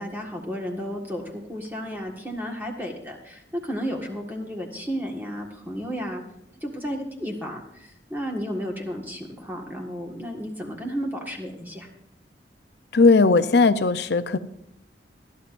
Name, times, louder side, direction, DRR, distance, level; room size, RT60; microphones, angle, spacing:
voice 1, 0.0-6.2 6.6-11.9, equal, 10° right, 0 dB, 1.7 m, -33 dB
voice 2, 12.9-14.4, left 3 dB, 65° left, 11 dB, 0.7 m, -18 dB
21.0 x 12.5 x 2.6 m, 0.74 s
head